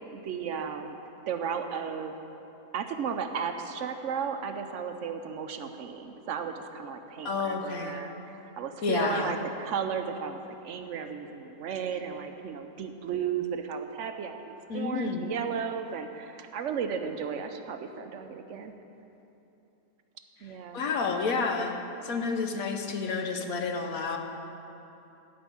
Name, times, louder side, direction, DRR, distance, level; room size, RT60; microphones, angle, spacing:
voice 1, 0.1-1.0 1.3-2.1 2.7-8.1 8.6-18.7 20.4-20.8, right 7 dB, 65° right, 7 dB, 0.9 m, -34 dB
voice 2, 7.2-8.0 8.8-9.3 14.7-15.3 20.7-21.8 22.0-24.2, left 4 dB, 70° left, 3 dB, 1.2 m, -30 dB
12.5 x 5.2 x 8.5 m, 3.0 s
omnidirectional pair, 1.6 m